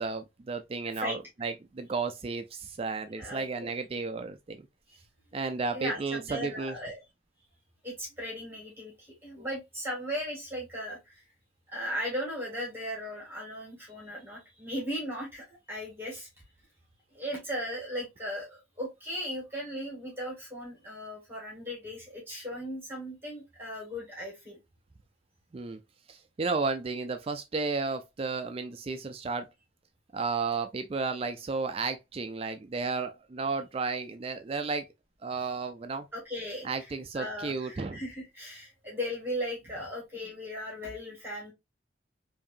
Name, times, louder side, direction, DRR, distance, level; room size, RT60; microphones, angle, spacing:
voice 1, 0.0-4.7 5.3-6.8 25.5-25.8 26.1-29.5 30.1-34.9 35.2-36.1 36.6-38.0, right 4 dB, 30° right, 0.3 m, -33 dB
voice 2, 3.2-3.7 5.7-7.0 7.8-11.2 11.7-16.3 17.1-24.6 36.1-36.7 37.1-41.5, equal, 10° right, 1.7 m, -37 dB
4.9 x 2.6 x 2.4 m
head